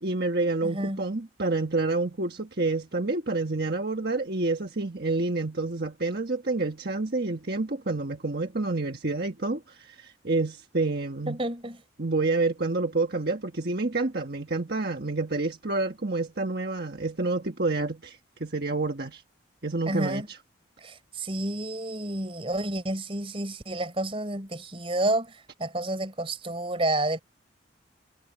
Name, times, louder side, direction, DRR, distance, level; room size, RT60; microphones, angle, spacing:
voice 1, 0.0-11.4 12.0-19.2 19.6-20.4, right 3 dB, 55° right, 1.4 m, -28 dB
voice 2, 0.6-1.0 11.3-11.8 19.9-20.3 20.8-27.2, right 1 dB, 30° right, 4.2 m, -30 dB
head